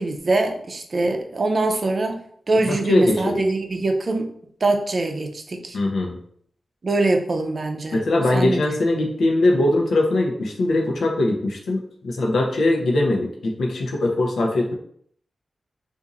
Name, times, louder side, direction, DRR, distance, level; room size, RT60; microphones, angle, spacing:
voice 1, 0.0-2.2 2.5-4.3 4.6-5.8 6.8-8.0 8.3-8.6, right 2 dB, 50° right, 4 dB, 0.5 m, -23 dB
voice 2, 2.5-3.4 5.7-6.2 7.9-14.7, left 2 dB, 90° left, 0 dB, 0.6 m, -21 dB
2.6 x 2.5 x 4.0 m, 0.64 s
cardioid pair, 75°, 0 cm